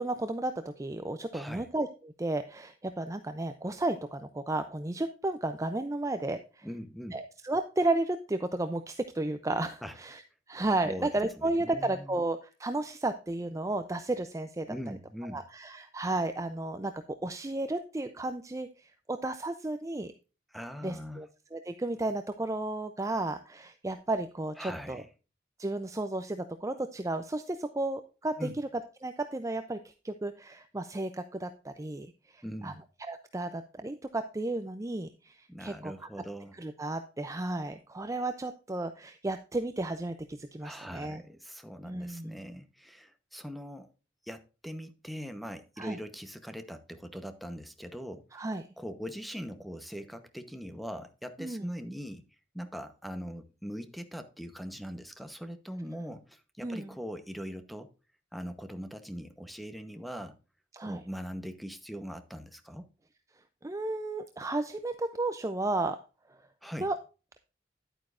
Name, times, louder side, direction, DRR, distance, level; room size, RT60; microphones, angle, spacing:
voice 1, 0.0-6.7 7.1-10.2 10.5-14.8 15.3-20.1 20.8-25.0 25.6-32.7 33.0-35.9 36.5-41.2 41.8-42.4 45.8-46.0 48.3-48.7 51.4-51.7 56.6-56.9 60.7-61.0 63.6-66.0 66.8-67.0, right 2 dB, 15° right, 0.5 m, -33 dB
voice 2, 1.3-1.7 6.6-7.2 9.8-10.0 10.8-11.1 11.4-12.2 14.7-15.4 20.5-21.2 24.6-25.1 28.4-28.6 32.4-32.8 35.5-36.5 40.6-43.9 44.2-48.3 48.8-52.2 52.5-57.9 58.3-60.4 60.8-62.9 66.6-66.9, equal, ahead, 0.9 m, -41 dB
10.5 x 9.0 x 2.5 m
head